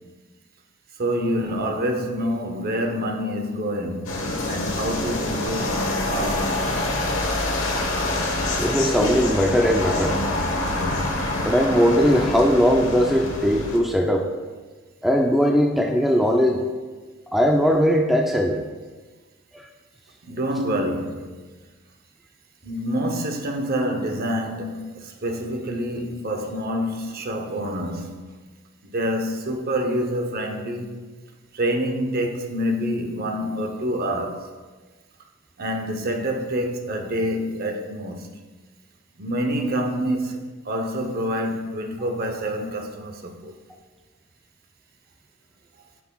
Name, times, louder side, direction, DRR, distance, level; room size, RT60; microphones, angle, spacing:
voice 1, 1.0-4.1 4.5-6.8 20.2-21.5 22.6-28.3 28.8-31.0 31.5-34.5 35.6-38.3 39.2-43.5, equal, 45° right, 0.7 m, -27 dB
sound 1, 4.0-13.8, left 2 dB, 75° left, 1.0 m, -26 dB
voice 2, 8.6-10.2 11.4-14.3 15.0-16.6 17.3-18.6 19.5-19.7, equal, ahead, 0.3 m, -19 dB
9.2 x 5.9 x 2.3 m
head